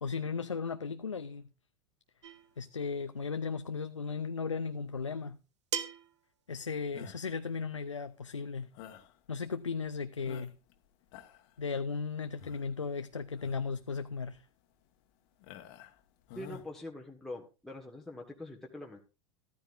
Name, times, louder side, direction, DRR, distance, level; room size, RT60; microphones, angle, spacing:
voice 1, 0.0-1.5 2.6-5.4 6.5-8.7 9.3-10.5 11.6-14.5, left 5 dB, 90° left, 0.5 m, -36 dB
sound 1, 2.2-2.6 4.1-4.2 5.7-6.2, right 8 dB, 70° right, 0.9 m, -37 dB
sound 2, 6.9-7.4 8.7-9.2 9.7-9.8 10.2-10.7 11.0-11.5 12.4-12.8 13.3-13.7 14.3-14.4 15.4-16.0 16.3-16.7, left 9 dB, 50° left, 1.4 m, -49 dB
voice 2, 16.3-19.0, left 1 dB, ahead, 1.5 m, -44 dB
14.0 x 13.0 x 2.5 m
figure-of-eight pair, 85°, 15 cm